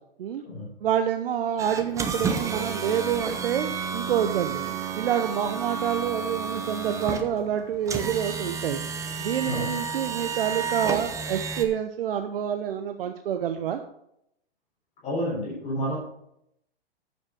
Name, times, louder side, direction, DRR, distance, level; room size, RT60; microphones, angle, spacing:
voice 1, 0.8-4.6 4.9-8.8 9.2-13.8, right 9 dB, 65° right, 7 dB, 0.8 m, -27 dB
sound 1, 1.6-11.7, right 5 dB, 10° right, 0.7 m, -31 dB
voice 2, 15.0-16.0, equal, 20° left, -5 dB, 3.7 m, -29 dB
8.9 x 7.4 x 4.9 m, 0.77 s
hypercardioid pair, 130°, 30 cm